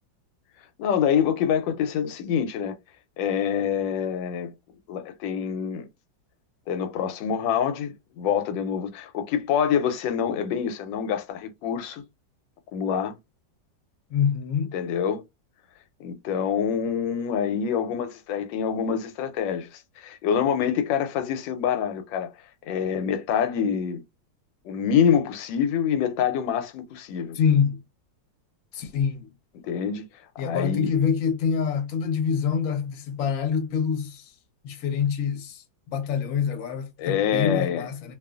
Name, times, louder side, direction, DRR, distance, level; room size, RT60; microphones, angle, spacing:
voice 1, 0.8-2.8 3.2-4.5 4.9-5.9 6.7-12.0 12.7-13.1 14.7-15.2 16.0-22.3 22.7-24.0 24.6-27.4 29.6-30.0 30.4-30.9 37.0-37.9, left 8 dB, 90° left, 1.3 m, -26 dB
voice 2, 14.1-14.7 27.3-27.8 28.7-29.3 30.4-34.3 34.6-38.2, left 7 dB, 60° left, 1.0 m, -26 dB
2.7 x 2.4 x 2.3 m
omnidirectional pair, 2.0 m